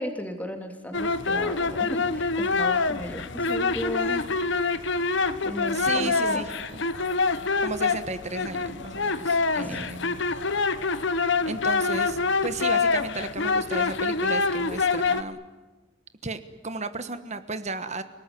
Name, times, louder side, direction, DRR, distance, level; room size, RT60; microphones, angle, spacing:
voice 1, 0.0-4.2 5.4-6.4 9.6-9.8, equal, 10° left, 4 dB, 3.1 m, -35 dB
sound 1, 0.9-15.2, left 4 dB, 60° left, 1.2 m, -26 dB
voice 2, 5.7-6.8 7.6-10.2 11.1-15.4 16.2-18.0, right 3 dB, 35° right, 10 dB, 1.3 m, -34 dB
29.5 x 19.5 x 9.9 m, 1.2 s
head